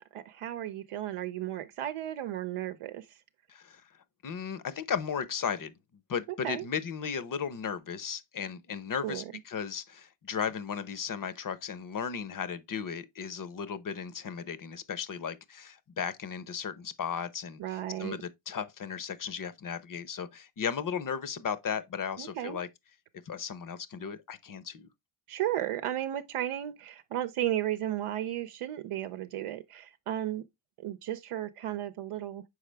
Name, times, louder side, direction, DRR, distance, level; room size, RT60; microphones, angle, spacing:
voice 1, 0.1-3.2 6.4-6.7 9.0-9.3 17.6-18.2 22.2-22.6 25.3-30.4 30.8-32.4, right 12 dB, 85° right, 0.7 m, -34 dB
voice 2, 3.5-3.8 4.2-5.7 6.1-22.7 23.3-24.9, left 7 dB, 40° left, 0.7 m, -35 dB
6.4 x 4.8 x 3.3 m
wide cardioid pair, 155°, 50 cm